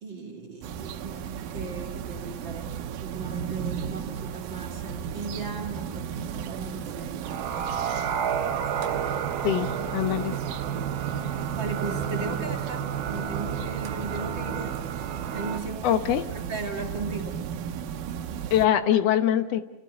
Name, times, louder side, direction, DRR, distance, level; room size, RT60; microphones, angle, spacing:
voice 1, 0.0-2.7 3.0-7.3 10.8-14.8 15.2-16.0 16.3-17.4, right 3 dB, 35° right, 1 dB, 2.6 m, -37 dB
sound 1, 0.6-18.7, right 8 dB, 85° right, 2.8 m, -35 dB
sound 2, 7.2-15.6, right 8 dB, 70° right, 2.8 m, -31 dB
voice 2, 9.4-10.4 15.8-16.2 18.5-19.6, left 11 dB, 70° left, 10 dB, 1.6 m, -23 dB
29.5 x 16.5 x 8.3 m, 1.1 s
omnidirectional pair, 4.0 m